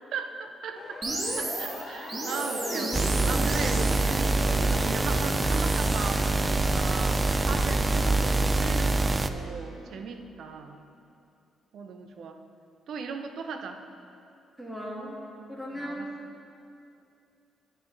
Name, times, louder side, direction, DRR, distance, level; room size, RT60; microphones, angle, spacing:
voice 1, 0.1-1.0 1.4-3.0 3.3-10.8 11.7-12.4 12.9-13.8 15.7-16.1, right 5 dB, 65° right, 7 dB, 0.7 m, -37 dB
Siren, 0.8-8.7, left 5 dB, 55° left, 0.5 m, -43 dB
sound 1, 1.0-6.1, right 2 dB, 40° right, 1.5 m, -34 dB
sound 2, 2.9-9.3, right 2 dB, 25° right, 0.4 m, -25 dB
voice 2, 7.5-8.0 9.8-9.9 14.6-15.2 15.5-16.2, equal, 5° right, -4 dB, 2.1 m, -38 dB
10.0 x 9.0 x 4.0 m, 2.7 s
cardioid pair, 90°, 0 cm